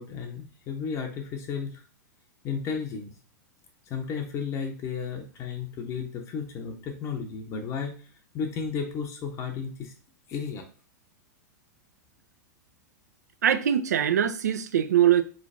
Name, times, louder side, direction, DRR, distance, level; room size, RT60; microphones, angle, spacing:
voice 1, 0.0-1.8 2.4-3.1 3.9-7.9 8.3-9.9 10.3-10.7, left 6 dB, 35° left, 0.6 m, -33 dB
voice 2, 13.4-15.2, right 10 dB, 70° right, 0.4 m, -22 dB
3.8 x 3.2 x 2.5 m
figure-of-eight pair, 95°, 9 cm